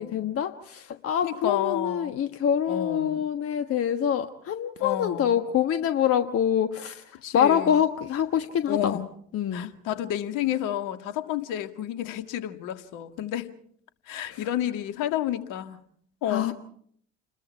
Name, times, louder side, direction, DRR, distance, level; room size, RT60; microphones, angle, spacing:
voice 1, 0.0-9.0 9.3-9.7 14.3-14.5 16.3-16.5, left 9 dB, 35° left, 9 dB, 1.4 m, -25 dB
voice 2, 1.2-2.2 2.7-3.2 4.8-5.4 7.2-7.8 8.7-9.0 9.5-13.5 14.1-15.8 16.2-16.5, left 11 dB, 55° left, 9 dB, 2.0 m, -30 dB
29.0 x 21.5 x 4.6 m, 0.62 s
figure-of-eight pair, 70°, 38 cm